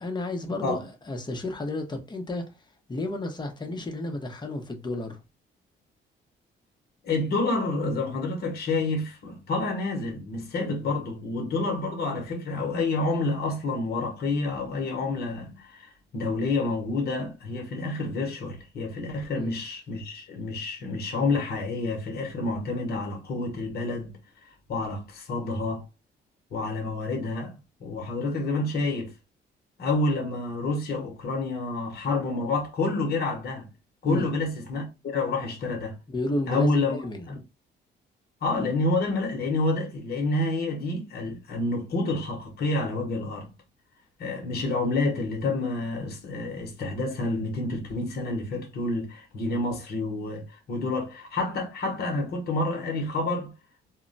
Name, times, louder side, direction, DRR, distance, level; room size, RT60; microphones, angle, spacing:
voice 1, 0.0-2.4 2.9-5.2 19.3-19.5 34.0-34.3 36.1-37.3 38.6-38.7, left 2 dB, 20° left, 0.7 m, -32 dB
voice 2, 7.0-25.8 26.5-27.5 27.8-29.1 29.8-33.7 34.0-36.0 36.5-37.0 37.3-37.4 38.4-43.5 44.2-53.5, left 2 dB, 55° left, 0.9 m, -28 dB
2.1 x 2.1 x 3.8 m
cardioid pair, 90°, 20 cm